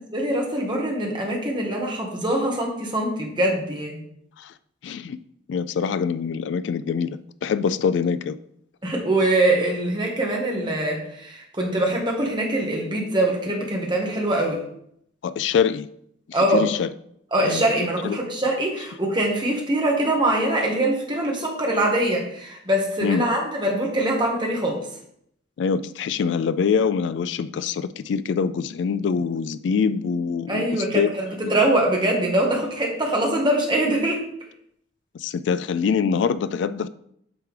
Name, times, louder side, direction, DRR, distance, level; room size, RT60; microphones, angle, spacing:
voice 1, 0.1-4.0 8.8-14.6 16.3-16.6 17.3-24.8 30.5-34.2, right 1 dB, 25° right, 1.5 m, -23 dB
voice 2, 4.8-5.2 5.5-8.4 15.2-15.9 16.5-16.9 17.4-17.6 18.0-18.2 23.0-23.3 25.6-31.1 31.4-31.5 35.1-36.9, left 6 dB, 70° left, 0.3 m, -24 dB
8.3 x 6.0 x 3.2 m
head